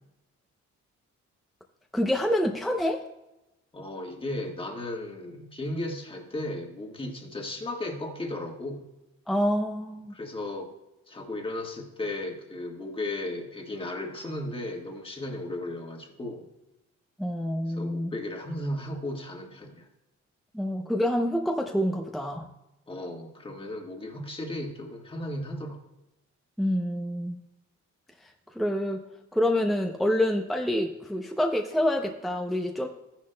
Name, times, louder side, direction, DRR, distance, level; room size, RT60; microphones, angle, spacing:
voice 1, 1.9-3.0 9.3-10.1 17.2-18.2 20.5-22.5 26.6-27.4 28.5-29.0 29.3-32.9, left 1 dB, ahead, 2 dB, 0.6 m, -27 dB
voice 2, 3.7-8.9 10.1-10.7 11.1-16.5 17.7-19.9 22.9-25.8, left 1 dB, 20° left, 2 dB, 1.5 m, -35 dB
14.0 x 10.0 x 2.2 m, 0.95 s
cardioid pair, 130°, 29 cm